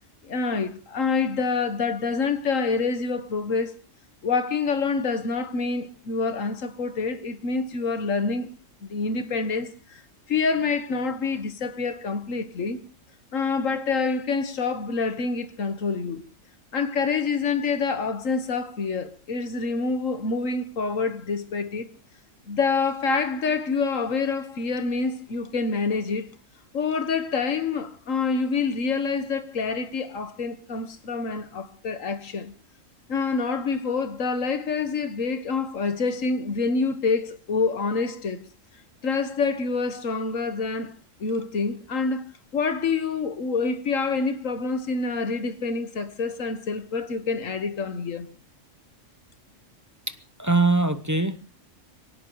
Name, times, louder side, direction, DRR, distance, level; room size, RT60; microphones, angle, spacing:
voice 1, 0.2-3.7 4.2-8.5 8.8-10.0 10.3-12.8 13.3-16.2 16.7-21.9 22.5-26.3 26.7-32.5 33.1-38.4 39.0-40.9 41.2-42.2 42.5-48.3, left 4 dB, 80° left, 1.8 m, -27 dB
voice 2, 50.1-51.4, right 3 dB, 15° right, 0.7 m, -23 dB
25.0 x 17.5 x 3.0 m
omnidirectional pair, 1.4 m